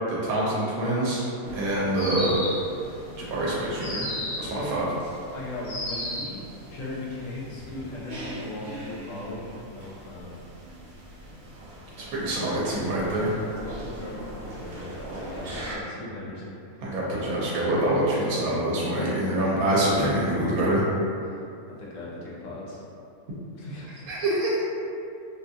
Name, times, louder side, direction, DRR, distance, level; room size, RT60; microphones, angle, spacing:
voice 1, 0.1-1.2 1.5-2.4 3.3-4.1 4.4-4.9 12.0-13.3 16.8-20.8 24.1-24.6, right 1 dB, 85° right, -6 dB, 1.1 m, -25 dB
sound 1, 1.4-15.8, right 1 dB, 50° right, 0.6 m, -42 dB
sound 2, 1.9-2.8 3.8-4.6 5.6-6.4, left 1 dB, 45° left, 1.0 m, -32 dB
voice 2, 4.4-4.8 5.3-6.4 6.7-10.4 13.6-16.5 19.4-19.6 21.2-21.4 21.7-22.8 23.5-24.2, left 2 dB, 70° left, -6 dB, 1.0 m, -38 dB
3.6 x 2.3 x 2.7 m, 2.6 s
omnidirectional pair, 1.5 m